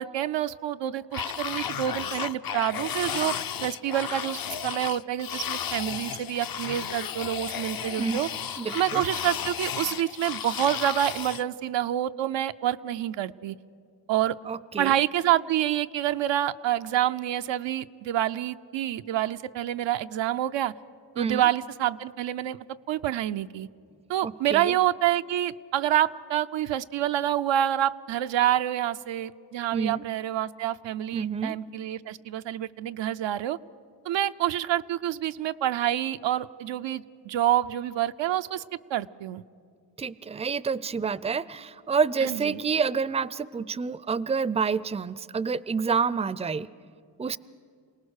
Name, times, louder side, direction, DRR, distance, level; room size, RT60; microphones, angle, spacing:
voice 1, 0.0-8.3 8.7-13.6 14.1-14.4 14.8-20.7 21.2-23.7 24.1-33.6 34.0-38.6 38.9-39.4 42.2-42.6, right 12 dB, 85° right, 10 dB, 0.6 m, -27 dB
sound 1, 1.1-11.4, left 8 dB, 50° left, 0.7 m, -33 dB
voice 2, 8.6-9.0 14.4-15.0 21.2-21.4 24.2-24.7 29.7-30.0 31.1-31.6 40.0-46.7 47.2-47.4, right 5 dB, 15° right, 19 dB, 0.5 m, -28 dB
28.0 x 18.5 x 6.5 m, 2.3 s
cardioid pair, 65°, 44 cm